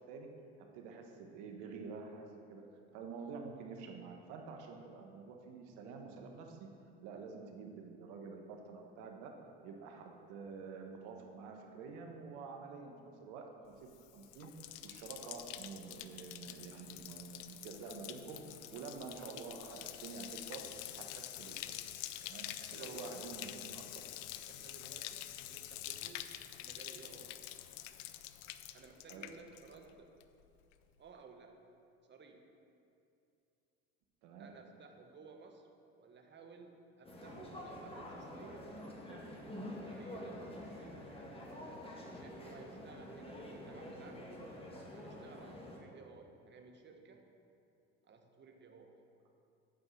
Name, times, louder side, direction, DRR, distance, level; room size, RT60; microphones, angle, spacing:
voice 1, 0.7-2.2 2.5-2.6 2.9-6.7 7.0-9.3 9.6-12.9 13.2-14.5 14.8-18.4 18.7-20.6 21.0-21.6 22.2-23.8 29.1-29.2 34.2-34.5, right 5 dB, 75° right, 3 dB, 1.2 m, -48 dB
Bathtub (filling or washing), 13.8-29.9 30.2-30.7, left 13 dB, 80° left, 0.5 m, -47 dB
voice 2, 22.6-23.2 24.5-26.3 26.6-27.4 28.7-30.2 31.0-31.6 32.1-32.5 34.4-35.7 36.0-39.5 39.9-41.1 41.6-44.5 44.9-47.3 48.0-49.0, right 4 dB, 35° right, 4 dB, 1.1 m, -56 dB
sound 1, 37.0-45.8, left 1 dB, 20° left, 1.8 m, -47 dB
8.2 x 4.9 x 6.3 m, 2.6 s
supercardioid pair, 75°, 30 cm